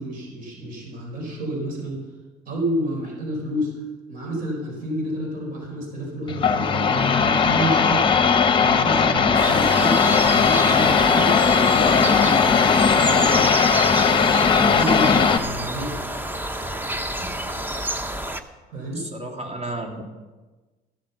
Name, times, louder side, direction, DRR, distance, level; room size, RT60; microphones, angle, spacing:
voice 1, 0.0-2.0 2.5-3.7 4.1-8.0 8.6-13.5 13.9-16.0 17.2-17.4 18.7-19.0, right 1 dB, 55° right, 0 dB, 4.2 m, -30 dB
sound 1, 6.3-15.4, left 6 dB, 30° left, 0.9 m, -18 dB
sound 2, 9.3-18.4, right 1 dB, 10° right, 0.8 m, -29 dB
voice 2, 19.0-20.0, right 2 dB, 35° right, 2 dB, 2.7 m, -32 dB
14.5 x 8.0 x 7.0 m, 1.2 s
cardioid pair, 110°, 17 cm